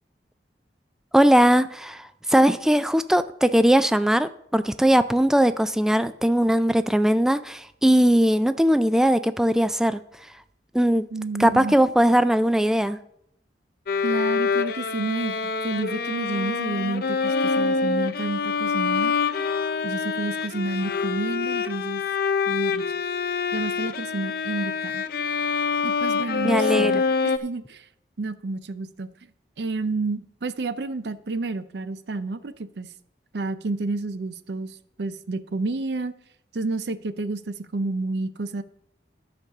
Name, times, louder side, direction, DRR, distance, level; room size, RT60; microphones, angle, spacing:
voice 1, 1.1-10.0 10.7-11.1 11.4-13.0 26.4-26.9, equal, 5° right, 12 dB, 0.3 m, -20 dB
voice 2, 11.1-11.8 14.0-19.1 19.8-22.0 22.5-22.9 23.5-25.0 25.8-27.9 28.2-29.1 29.6-32.9 33.3-36.1 36.5-38.6, right 3 dB, 70° right, 13 dB, 0.6 m, -30 dB
Bowed string instrument, 13.9-27.4, left 5 dB, 60° left, 0.5 m, -26 dB
11.0 x 5.2 x 6.6 m, 0.73 s
head